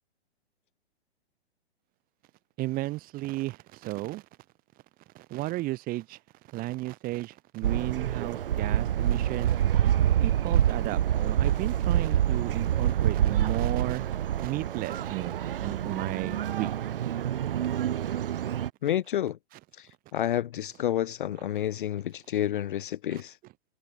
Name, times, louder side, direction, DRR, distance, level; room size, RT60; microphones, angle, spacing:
voice 1, 2.6-4.2 5.1-6.2 6.5-9.9 10.2-14.1 14.4-15.4 15.6-16.7 23.1-23.2, right 18 dB, 25° right, 5.8 m, -34 dB
sound 1, 7.6-18.7, right 10 dB, 55° right, 0.9 m, -27 dB
voice 2, 18.8-19.4 19.8-23.4, left 11 dB, 50° left, 0.7 m, -30 dB
figure-of-eight pair, 120°, 32 cm